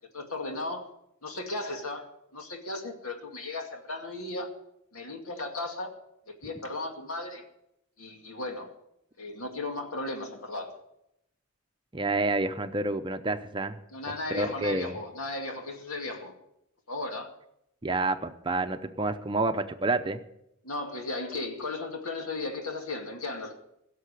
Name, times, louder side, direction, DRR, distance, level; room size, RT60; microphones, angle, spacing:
voice 1, 0.1-0.9 1.2-4.5 4.9-5.9 6.3-7.4 8.0-8.7 9.2-10.8 13.9-16.3 16.9-17.3 20.6-23.5, left 2 dB, 80° left, 3 dB, 2.3 m, -36 dB
voice 2, 11.9-13.8 14.3-15.0 17.8-20.2, right 2 dB, 20° right, 8 dB, 0.6 m, -29 dB
16.5 x 6.7 x 8.2 m, 0.81 s
head